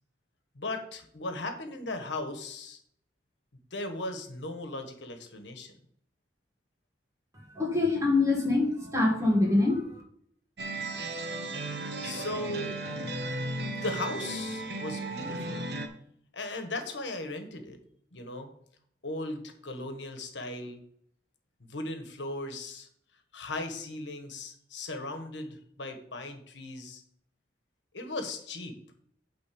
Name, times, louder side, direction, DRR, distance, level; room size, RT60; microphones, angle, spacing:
voice 1, 0.5-2.8 3.7-5.7 12.0-12.7 13.8-15.7 16.3-17.8 18.1-18.5 19.0-20.8 21.6-22.9 23.3-27.0 27.9-28.8, left 2 dB, 75° left, 6 dB, 1.3 m, -37 dB
voice 2, 7.6-10.0, left 2 dB, 15° right, 0 dB, 1.8 m, -25 dB
sound 1, 10.6-15.9, right 2 dB, 60° right, 1.0 m, -35 dB
9.4 x 3.8 x 6.8 m, 0.64 s
head